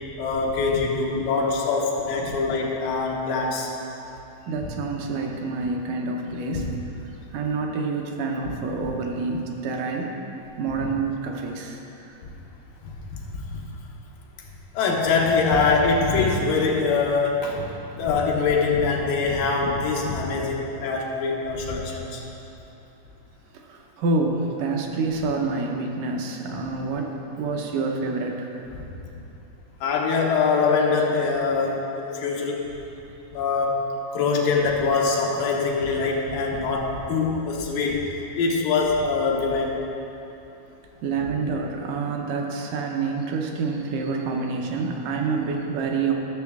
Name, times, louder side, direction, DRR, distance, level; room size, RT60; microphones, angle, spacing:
voice 1, 0.2-3.7 6.5-6.7 13.3-13.6 14.7-17.6 18.0-22.2 29.8-32.6 33.3-38.0 38.4-39.8, left 4 dB, 85° left, -1 dB, 2.7 m, -23 dB
voice 2, 4.5-6.7 7.3-10.1 10.6-11.8 20.5-20.6 23.7-28.5 41.0-46.1, right 4 dB, 75° right, 2 dB, 2.3 m, -27 dB
13.5 x 6.9 x 3.5 m, 3.0 s
omnidirectional pair, 3.9 m